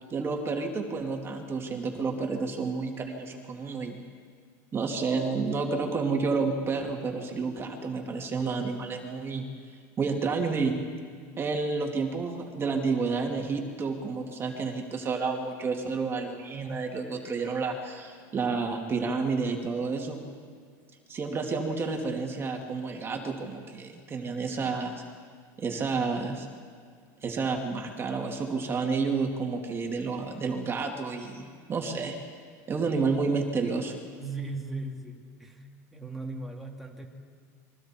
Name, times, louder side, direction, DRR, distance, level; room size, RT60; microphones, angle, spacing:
voice 1, 0.1-4.0 4.7-9.5 10.0-10.8 11.4-20.2 21.1-25.0 25.6-26.5 27.2-32.2 32.7-33.9, right 4 dB, 25° right, 2 dB, 2.5 m, -30 dB
voice 2, 34.2-35.7 35.9-37.1, right 3 dB, ahead, -1 dB, 2.5 m, -38 dB
28.0 x 23.5 x 4.5 m, 2.1 s
supercardioid pair, 125°, 9 cm